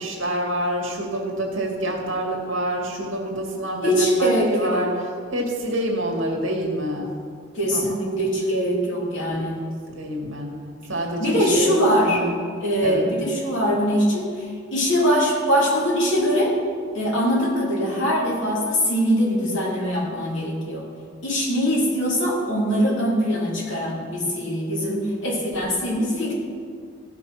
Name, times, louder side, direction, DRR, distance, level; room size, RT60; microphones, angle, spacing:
voice 1, 0.0-5.0 5.3-7.1 7.7-7.9 9.3-10.5 10.9-12.4 12.8-13.0, right 1 dB, 70° right, 1 dB, 2.2 m, -27 dB
voice 2, 3.8-4.9 7.5-9.6 11.2-12.2 12.6-14.5 14.7-16.5 16.9-20.9 21.2-26.3, equal, 65° left, -4 dB, 3.1 m, -22 dB
16.0 x 6.1 x 5.8 m, 2.1 s
head